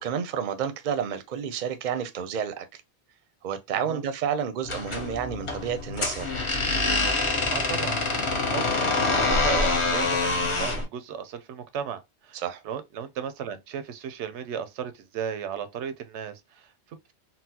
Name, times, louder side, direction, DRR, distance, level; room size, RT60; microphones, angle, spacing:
voice 1, 0.0-2.8 3.4-6.3 12.3-12.6, right 8 dB, 55° right, 0.6 m, -30 dB
sound 1, 4.6-10.8, left 3 dB, 35° left, 0.6 m, -25 dB
voice 2, 7.5-8.0 8.4-17.1, right 7 dB, 85° right, 0.9 m, -36 dB
4.0 x 2.0 x 2.7 m
omnidirectional pair, 1.1 m